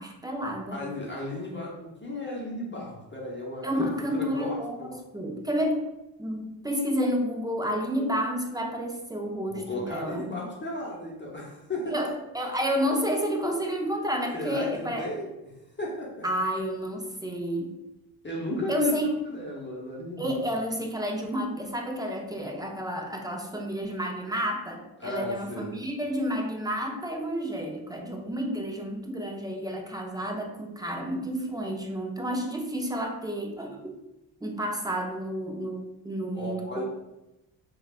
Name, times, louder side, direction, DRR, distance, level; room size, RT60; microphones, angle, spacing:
voice 1, 0.0-0.8 3.6-5.9 6.2-10.3 11.9-15.1 16.2-17.7 18.7-19.1 20.2-34.0 34.4-36.8, equal, 10° right, 1 dB, 0.5 m, -30 dB
voice 2, 0.7-4.9 9.5-11.9 14.3-15.3 15.8-16.2 18.2-20.3 25.0-25.8 36.3-36.8, left 2 dB, 25° left, -3 dB, 0.9 m, -34 dB
3.3 x 2.4 x 2.3 m, 0.94 s
hypercardioid pair, 45°, 48 cm